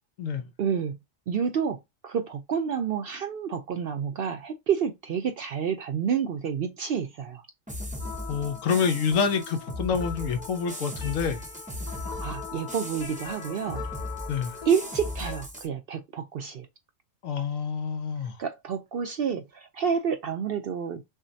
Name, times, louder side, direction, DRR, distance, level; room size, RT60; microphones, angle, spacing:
voice 1, 0.6-1.0 1.3-7.5 12.2-14.0 14.7-16.7 18.4-21.0, right 7 dB, 65° right, 0.6 m, -29 dB
sound 1, 7.7-15.7, left 1 dB, 10° right, 0.6 m, -38 dB
sound 2, 8.0-15.4, left 6 dB, 45° left, 0.6 m, -41 dB
voice 2, 8.3-11.4 14.3-14.6 17.2-18.4, left 6 dB, 80° left, 1.2 m, -27 dB
6.1 x 2.1 x 2.7 m
omnidirectional pair, 1.4 m